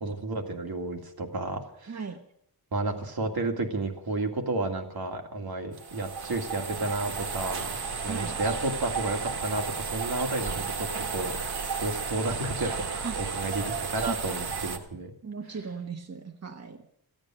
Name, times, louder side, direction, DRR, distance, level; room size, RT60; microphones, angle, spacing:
voice 1, 0.0-2.0 2.7-7.7 8.0-11.4 11.8-15.1, right 2 dB, 70° right, 3 dB, 2.2 m, -32 dB
voice 2, 1.9-2.2 8.1-8.4 13.0-13.2 14.1-14.2 15.2-16.8, right 5 dB, 45° right, 5 dB, 1.2 m, -37 dB
sound 1, 5.7-14.8, right 5 dB, 90° right, 1.6 m, -33 dB
15.5 x 8.9 x 8.8 m, 0.71 s
wide cardioid pair, 115°, 38 cm